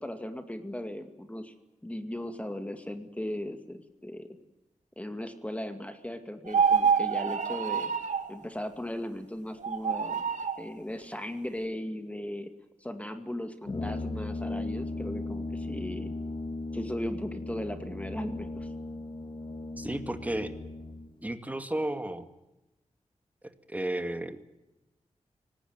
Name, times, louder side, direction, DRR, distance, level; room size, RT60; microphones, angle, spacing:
voice 1, 0.0-1.5 1.8-4.3 5.0-7.9 8.3-10.2 10.6-12.5 12.8-16.1 16.7-18.7, left 1 dB, 10° left, 7 dB, 2.2 m, -37 dB
sound 1, 6.5-8.3 9.6-10.6, right 6 dB, 85° right, 2.0 m, -26 dB
Brass instrument, 13.6-21.1, left 2 dB, 40° left, 2.2 m, -37 dB
voice 2, 19.8-20.5 21.2-22.3 23.7-24.4, right 1 dB, 10° right, 8 dB, 2.2 m, -33 dB
25.0 x 19.0 x 9.5 m, 0.98 s
wide cardioid pair, 95°, 12 cm